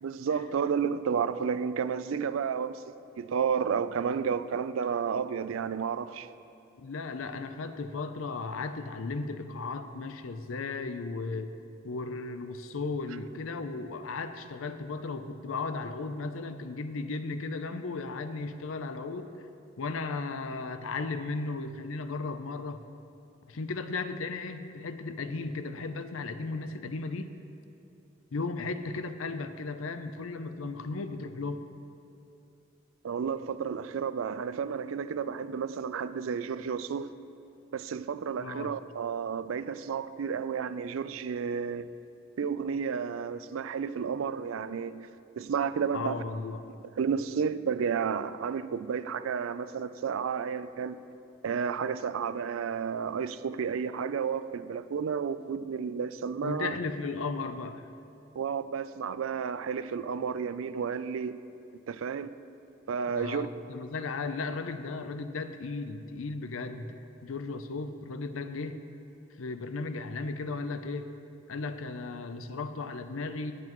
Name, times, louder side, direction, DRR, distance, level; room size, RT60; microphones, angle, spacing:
voice 1, 0.0-6.3 33.0-37.2 37.7-41.9 42.4-45.1 45.4-46.2 47.0-51.0 51.4-56.7 58.4-61.4 61.9-62.3 62.9-63.5, right 6 dB, 85° right, 0.4 m, -31 dB
voice 2, 6.8-11.5 11.8-19.3 19.8-22.8 23.5-27.3 28.3-31.6 38.4-38.7 45.9-46.7 56.4-57.8 63.1-68.8 69.4-71.1 71.5-73.5, left 3 dB, 90° left, 0.6 m, -35 dB
18.5 x 7.8 x 3.0 m
head